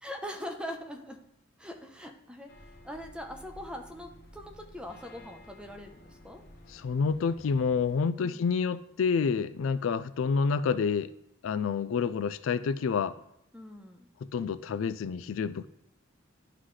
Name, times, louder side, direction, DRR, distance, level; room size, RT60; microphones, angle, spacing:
voice 1, 0.0-1.2 1.6-2.5 2.8-6.4 8.2-8.4 13.5-14.1, left 1 dB, 5° right, 4 dB, 0.8 m, -42 dB
sound 1, 2.5-8.0, left 1 dB, 60° left, 1.0 m, -53 dB
voice 2, 6.7-11.1 11.4-13.2 14.3-15.7, left 5 dB, 80° left, 15 dB, 0.4 m, -28 dB
11.0 x 3.9 x 3.2 m, 0.82 s
head